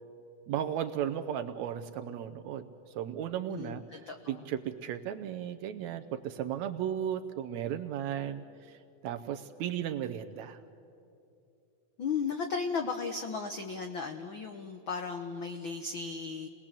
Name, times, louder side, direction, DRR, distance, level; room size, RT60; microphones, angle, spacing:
voice 1, 0.5-10.6, right 10 dB, 75° right, 10 dB, 1.8 m, -35 dB
voice 2, 3.5-4.5 12.0-16.5, left 5 dB, 80° left, 6 dB, 1.1 m, -35 dB
29.0 x 19.5 x 7.5 m, 2.7 s
omnidirectional pair, 3.7 m